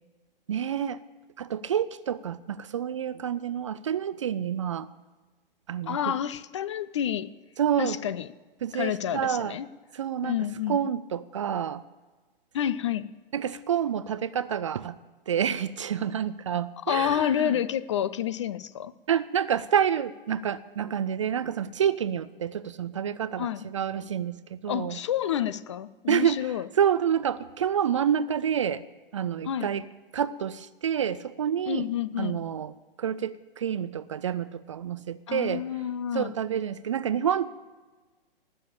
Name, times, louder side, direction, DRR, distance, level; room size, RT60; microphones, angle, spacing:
voice 1, 0.5-1.0 1.4-4.9 5.7-6.0 7.6-8.0 8.6-9.6 9.9-10.4 10.7-11.8 13.3-15.0 15.3-17.5 19.1-25.0 26.1-28.8 29.1-29.9 30.1-31.9 32.2-32.7 33.0-35.6 36.1-37.5, right 9 dB, 35° right, 15 dB, 0.4 m, -28 dB
voice 2, 5.9-7.3 7.8-8.3 8.7-9.7 10.2-10.8 12.5-13.1 16.8-18.9 23.4-23.6 24.7-26.7 29.4-29.7 31.7-32.4 35.3-36.3, left 10 dB, 30° left, 16 dB, 0.4 m, -29 dB
18.5 x 7.0 x 8.5 m, 1.3 s
figure-of-eight pair, 120°, 30 cm